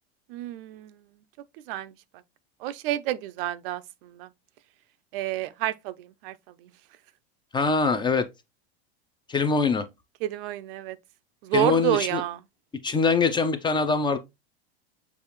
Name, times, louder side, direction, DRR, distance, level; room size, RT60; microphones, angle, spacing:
voice 1, 0.3-1.0 1.7-1.9 2.6-4.3 5.1-6.4 6.6-6.7 10.2-11.0 11.4-12.4, right 13 dB, 65° right, 0.5 m, -29 dB
voice 2, 7.5-8.3 9.3-9.9 11.5-12.2 12.8-14.2, left 4 dB, 15° left, 0.4 m, -23 dB
6.7 x 2.4 x 3.0 m
hypercardioid pair, 105°, 31 cm